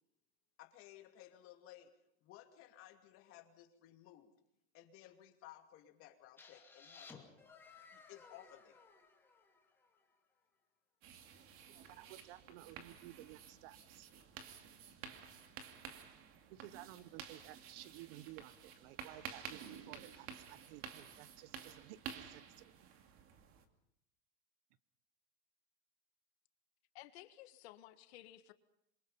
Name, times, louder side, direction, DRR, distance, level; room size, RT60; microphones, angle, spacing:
voice 1, 0.6-1.9 2.2-4.3 4.7-7.2 7.9-8.8, left 13 dB, 40° left, 5 dB, 2.7 m, -58 dB
sound 1, 6.4-10.1, left 4 dB, 5° left, 2.6 m, -59 dB
sound 2, 11.0-23.6, right 7 dB, 40° right, 2.5 m, -52 dB
voice 2, 11.7-14.1 16.5-22.9, right 16 dB, 60° right, 18 dB, 1.0 m, -55 dB
voice 3, 26.9-28.5, left 14 dB, 75° left, 10 dB, 1.8 m, -55 dB
27.5 x 23.5 x 5.6 m, 0.79 s
supercardioid pair, 160°, 32 cm